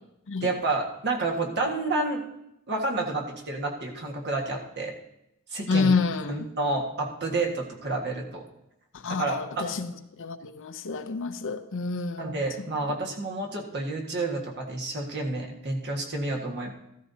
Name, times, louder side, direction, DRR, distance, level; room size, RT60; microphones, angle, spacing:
voice 1, 0.4-2.2 2.7-4.9 5.5-5.9 6.3-8.4 9.1-9.8 12.2-16.7, right 2 dB, 50° right, 1 dB, 1.7 m, -29 dB
voice 2, 5.7-6.5 8.9-9.9 10.2-12.3, left 4 dB, 60° left, 8 dB, 0.7 m, -28 dB
14.5 x 13.0 x 2.8 m, 0.83 s
head